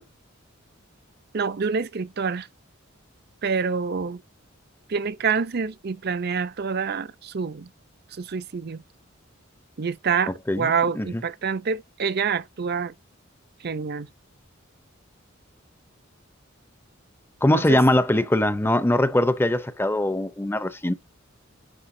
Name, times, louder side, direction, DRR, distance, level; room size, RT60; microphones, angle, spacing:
voice 1, 1.3-2.5 3.4-4.2 4.9-7.7 8.1-8.8 9.8-12.9 13.6-14.1 17.5-17.8, right 5 dB, 50° right, 0.6 m, -27 dB
voice 2, 17.4-20.9, left 1 dB, 10° left, 0.6 m, -21 dB
9.9 x 5.8 x 2.7 m
head